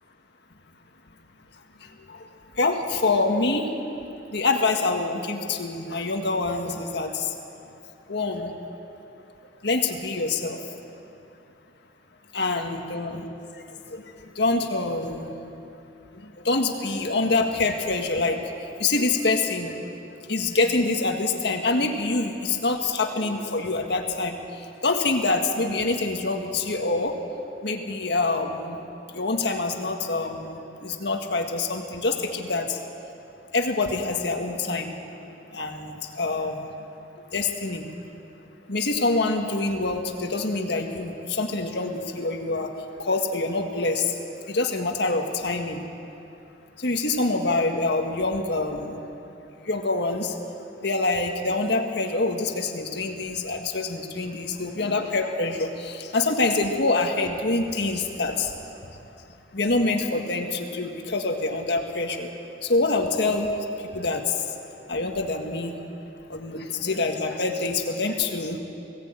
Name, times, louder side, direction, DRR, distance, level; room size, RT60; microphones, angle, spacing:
voice 1, 1.8-3.7 4.3-7.4 8.1-8.5 9.6-10.6 12.3-15.3 16.1-19.8 20.3-27.2 27.6-28.8 29.1-32.8 33.5-34.9 35.2-36.7 37.3-37.9 38.7-44.2 44.5-45.9 46.8-49.0 49.6-50.4 50.7-58.5 59.5-62.3 62.6-63.5 63.8-64.5 64.9-65.8 66.3-68.6, left 3 dB, 65° left, 3 dB, 1.8 m, -26 dB
20.5 x 17.0 x 8.9 m, 2.8 s
head